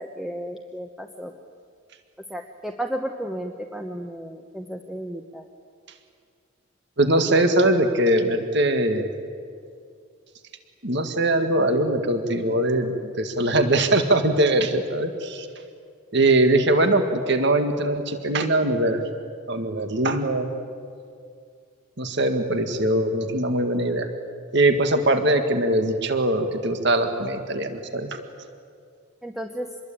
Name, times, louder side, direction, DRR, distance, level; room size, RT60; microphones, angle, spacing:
voice 1, 0.0-1.3 2.3-5.4 29.2-29.7, right 1 dB, ahead, 3 dB, 1.0 m, -33 dB
voice 2, 7.0-9.1 10.8-15.5 16.1-19.0 19.5-20.5 22.0-24.1 24.5-28.2, right 1 dB, 55° right, 7 dB, 1.9 m, -21 dB
26.5 x 21.5 x 8.8 m, 2.3 s
head